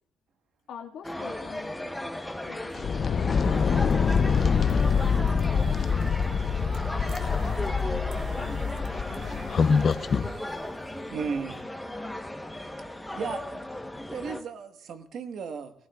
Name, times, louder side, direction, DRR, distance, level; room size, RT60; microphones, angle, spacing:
voice 1, 0.7-2.0 2.5-5.9 6.5-9.6, left 8 dB, 75° left, 2 dB, 1.8 m, -45 dB
sound 1, 1.0-14.4, left 1 dB, 5° left, 1.0 m, -36 dB
sound 2, 2.7-10.3, left 5 dB, 35° left, 0.5 m, -25 dB
sound 3, 3.4-11.6, right 5 dB, 80° right, 2.4 m, -51 dB
voice 2, 11.1-11.6 12.9-13.8 14.1-15.7, right 5 dB, 60° right, 7 dB, 1.4 m, -35 dB
22.0 x 18.0 x 2.4 m, 0.73 s
cardioid pair, 150°, 0 cm